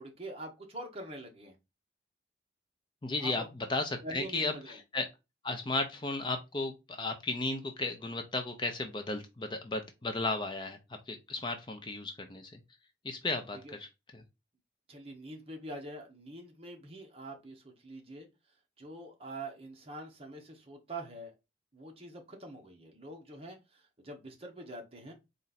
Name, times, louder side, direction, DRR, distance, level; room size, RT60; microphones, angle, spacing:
voice 1, 0.0-1.6 3.2-3.5 4.0-4.8 13.6-13.7 14.9-18.3 18.8-21.3 21.7-25.1, right 1 dB, 30° right, 2 dB, 1.0 m, -45 dB
voice 2, 3.0-3.4 3.7-5.1 5.4-10.8 11.1-12.5 13.0-13.9 14.1-14.2, left 2 dB, 25° left, 6 dB, 0.5 m, -34 dB
4.2 x 2.5 x 4.0 m, 0.24 s
head